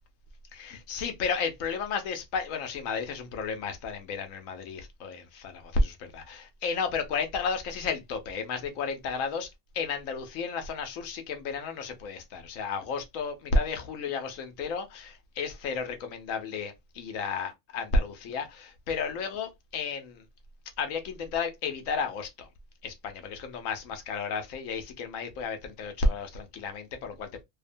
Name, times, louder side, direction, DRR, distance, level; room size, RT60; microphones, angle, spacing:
voice 1, 0.5-20.2 20.8-22.5 22.8-27.4, left 4 dB, 85° left, 1.0 m, -32 dB
2.7 x 2.1 x 2.5 m
omnidirectional pair, 1.3 m